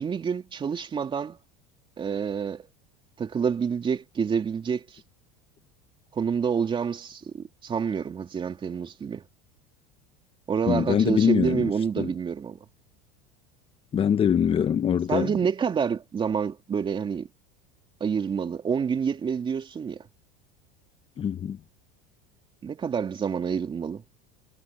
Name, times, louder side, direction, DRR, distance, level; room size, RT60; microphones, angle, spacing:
voice 1, 0.0-1.4 2.0-2.7 3.2-5.0 6.1-9.2 10.5-12.6 15.1-17.3 18.0-20.0 22.6-24.0, right 6 dB, 25° right, 3.2 m, -28 dB
voice 2, 10.7-11.7 12.0-12.1 13.9-15.3 21.2-21.6, left 8 dB, 25° left, 1.1 m, -23 dB
supercardioid pair, 130°, 20 cm